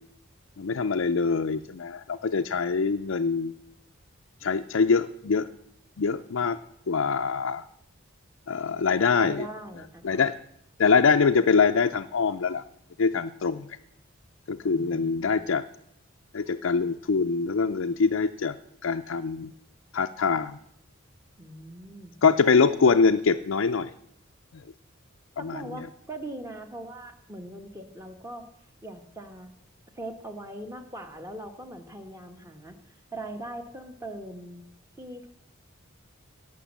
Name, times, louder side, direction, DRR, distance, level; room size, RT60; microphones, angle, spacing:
voice 1, 0.6-3.5 4.4-5.5 6.0-6.6 6.9-7.6 8.5-9.5 10.0-10.3 10.8-12.6 13.0-13.8 14.5-15.6 16.3-18.6 18.8-19.5 19.9-20.6 22.2-23.9 24.5-24.6 25.4-25.6, left 5 dB, 75° left, 5 dB, 0.5 m, -24 dB
voice 2, 9.1-10.1 14.6-15.5 21.4-22.1 25.5-28.5 28.8-29.5 29.9-34.7 35.0-35.3, right 1 dB, 15° right, 6 dB, 1.3 m, -41 dB
17.0 x 6.1 x 7.4 m, 0.77 s
head